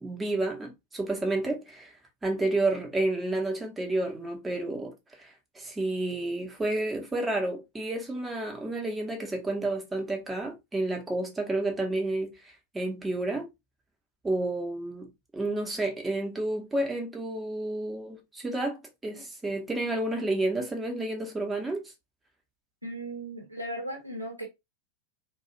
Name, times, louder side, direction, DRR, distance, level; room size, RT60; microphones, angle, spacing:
voice 1, 0.0-1.9 2.2-12.3 12.7-13.5 14.2-21.9, right 2 dB, 10° right, 0.8 m, -30 dB
voice 2, 22.8-24.4, right 1 dB, 85° right, 1.1 m, -37 dB
2.3 x 2.3 x 2.9 m
figure-of-eight pair, 90°, 0 cm